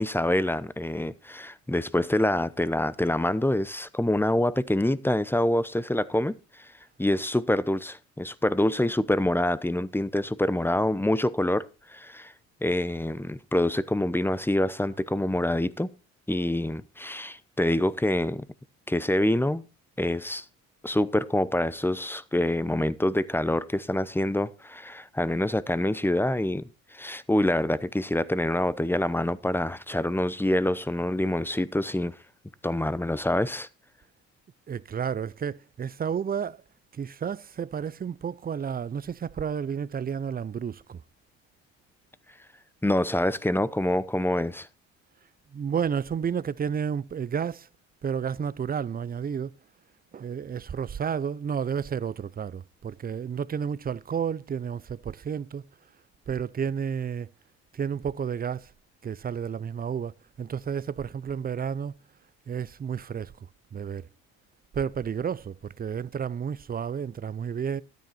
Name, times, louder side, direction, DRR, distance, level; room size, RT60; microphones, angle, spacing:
voice 1, 0.0-6.7 7.0-12.3 12.6-15.9 16.3-18.4 18.9-19.7 20.0-20.4 20.8-32.2 32.6-33.7 42.8-44.7, left 1 dB, 5° left, 0.8 m, -26 dB
voice 2, 34.7-36.6 36.9-41.0 45.5-47.7 48.0-49.6 50.1-55.6 56.3-57.3 57.7-58.7 59.0-62.0 62.5-63.3 63.7-64.1 64.7-67.8, right 7 dB, 25° right, 0.5 m, -31 dB
13.0 x 9.2 x 4.2 m
hypercardioid pair, 55°, 40 cm